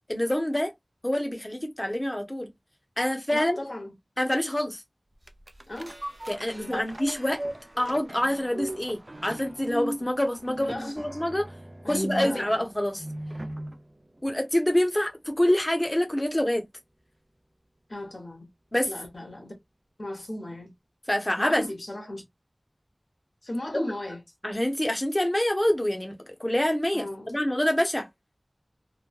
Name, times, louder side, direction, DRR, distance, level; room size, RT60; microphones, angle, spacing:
voice 1, 0.1-0.7 1.0-2.5 3.0-3.6 4.2-4.8 6.3-7.4 7.8-11.5 11.9-13.0 14.2-16.6 18.7-18.9 21.1-21.6 23.7-23.9 24.4-28.1, left 1 dB, 25° left, 0.8 m, -26 dB
voice 2, 3.3-3.9 5.7-6.0 6.5-6.8 10.7-10.9 11.8-12.6 17.9-18.5 18.9-19.5 20.0-20.7 21.4-22.2 23.4-24.2 26.9-27.3, left 1 dB, 80° left, 1.0 m, -36 dB
sound 1, 5.2-13.8 14.2-14.3, right 1 dB, 40° right, 0.4 m, -37 dB
3.2 x 2.1 x 2.3 m
wide cardioid pair, 50°, 0 cm